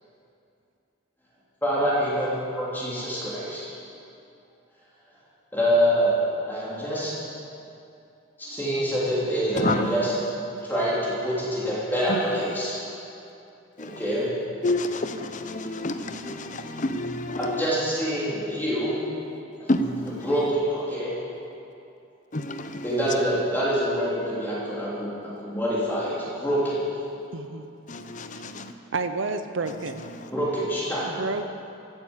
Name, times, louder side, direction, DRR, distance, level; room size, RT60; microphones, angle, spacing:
voice 1, 1.6-3.6 5.5-7.1 8.4-10.0 10.6-12.8 13.8-14.3 17.4-19.0 19.6-19.7 20.2-21.1 22.8-26.8 30.3-31.2, equal, 10° left, 3.2 m, -26 dB
voice 2, 9.6-9.9 12.1-12.6 13.8-14.1 14.6-17.7 19.7-20.5 22.3-23.1 27.9-28.7 29.7-30.3, left 2 dB, 35° left, 0.7 m, -29 dB
voice 3, 27.3-27.7 28.9-30.0 30.4-30.5 31.0-31.5, right 3 dB, 65° right, 0.7 m, -30 dB
15.5 x 9.3 x 7.3 m
head